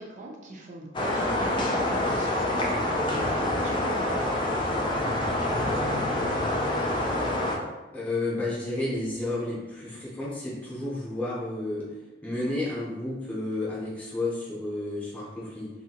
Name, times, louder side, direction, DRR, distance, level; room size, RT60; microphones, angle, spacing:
voice 1, 0.0-4.6 5.0-6.4, right 2 dB, 45° right, 0 dB, 0.5 m, -40 dB
sound 1, 0.9-7.6, left 1 dB, 25° left, 0.4 m, -26 dB
voice 2, 7.9-11.9 12.2-15.7, left 2 dB, 10° left, -8 dB, 0.8 m, -31 dB
2.7 x 2.7 x 2.8 m, 1.1 s
head